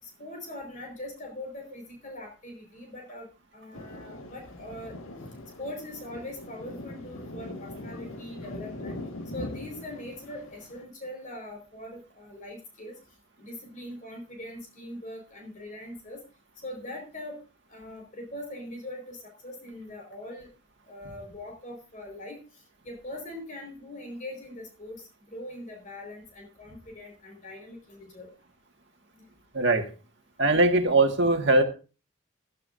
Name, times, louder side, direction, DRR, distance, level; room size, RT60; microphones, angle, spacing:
voice 1, 0.0-3.3 3.5-4.9 5.6-9.0 9.3-12.9 13.4-16.2 16.6-17.4 17.7-20.5 20.9-22.4 22.8-28.3, left 1 dB, 40° left, 1 dB, 5.1 m, -41 dB
Thunder, 3.7-10.8, left 1 dB, 85° left, 1.9 m, -41 dB
voice 2, 29.5-29.9 30.4-31.6, right 2 dB, 60° right, 4 dB, 2.0 m, -21 dB
16.5 x 13.5 x 2.7 m, 0.34 s
head